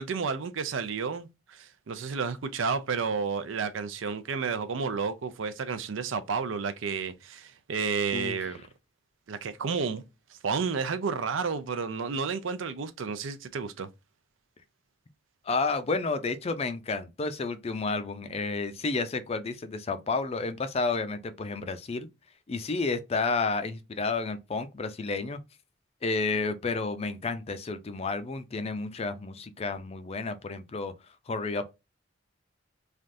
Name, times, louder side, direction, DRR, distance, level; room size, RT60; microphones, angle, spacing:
voice 1, 0.0-8.6 9.3-10.0 10.3-13.9, right 5 dB, 90° right, 0.5 m, -31 dB
voice 2, 15.5-22.1 22.5-25.4 26.0-30.9 31.3-31.7, left 3 dB, 35° left, 0.4 m, -31 dB
3.3 x 2.4 x 2.5 m
head